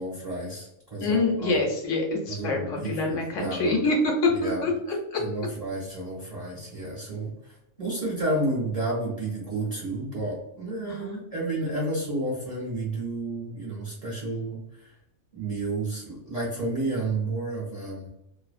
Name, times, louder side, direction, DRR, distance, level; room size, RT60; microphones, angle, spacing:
voice 1, 0.0-1.6 2.3-3.8 4.3-4.7 5.2-7.3 7.8-14.9 15.3-18.1, right 2 dB, 35° right, -6 dB, 0.6 m, -31 dB
voice 2, 1.0-4.7 10.9-11.2, left 2 dB, 70° left, 0 dB, 0.9 m, -25 dB
2.5 x 2.0 x 2.4 m, 0.82 s
omnidirectional pair, 1.4 m